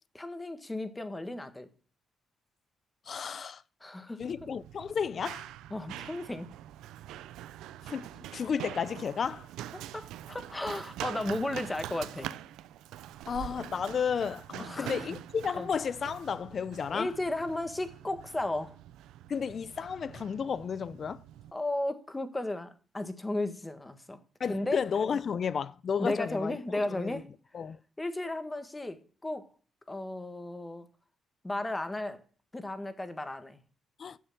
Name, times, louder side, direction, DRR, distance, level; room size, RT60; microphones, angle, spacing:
voice 1, 0.1-1.7 3.8-4.2 5.7-6.5 9.9-12.3 14.6-15.0 15.6-15.7 16.9-18.7 21.5-24.2 24.5-24.8 26.0-27.2 28.0-29.5 29.9-30.9 31.4-32.2 32.5-33.6, left 2 dB, 15° left, 1.5 m, -34 dB
voice 2, 3.1-3.6 4.2-5.5 7.8-9.5 13.3-17.1 19.3-21.2 24.4-27.2 27.5-27.8 34.0-34.2, left 6 dB, 50° left, 0.6 m, -33 dB
Run, 4.2-21.5, right 12 dB, 90° right, 0.5 m, -44 dB
8.6 x 7.1 x 7.2 m
cardioid pair, 90°, 0 cm